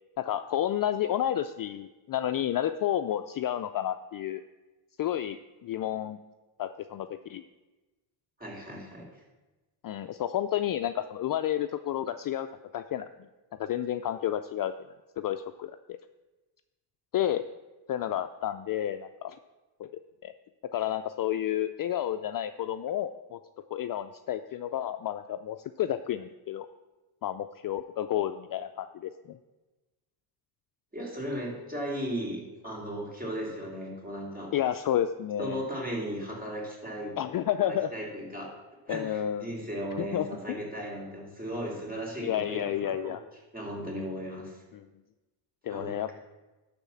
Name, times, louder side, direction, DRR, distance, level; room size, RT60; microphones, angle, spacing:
voice 1, 0.2-4.4 5.0-6.2 6.6-7.4 9.8-12.5 12.7-13.1 13.6-14.7 15.2-16.0 17.1-17.4 17.9-19.4 19.8-19.9 20.2-20.3 20.7-23.4 23.7-26.7 27.2-29.4 34.5-35.6 37.2-38.1 38.9-39.5 40.0-40.6 42.2-43.2 44.7-44.8 45.6-46.1, left 11 dB, 45° left, 10 dB, 0.5 m, -31 dB
voice 2, 8.4-9.2 30.9-34.5 35.4-37.1 37.6-38.5 38.9-43.1 43.5-44.6 45.7-46.1, equal, 15° right, -1 dB, 3.8 m, -36 dB
12.0 x 4.2 x 7.2 m, 1.1 s
cardioid pair, 85°, 50 cm